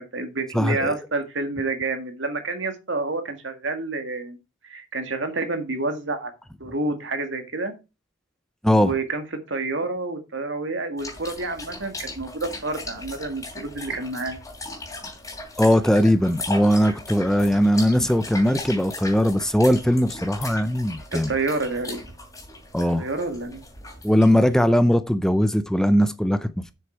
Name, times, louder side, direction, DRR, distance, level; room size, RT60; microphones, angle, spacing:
voice 1, 0.0-4.4 4.6-6.3 6.6-7.7 8.8-14.4 21.1-22.0 23.0-23.6, right 3 dB, 75° right, 1.9 m, -29 dB
voice 2, 0.5-1.0 8.6-8.9 15.6-21.3 22.7-23.1 24.0-26.7, equal, 5° left, 0.5 m, -20 dB
sound 1, 11.0-24.5, left 2 dB, 20° left, 3.1 m, -38 dB
7.7 x 6.4 x 4.6 m
head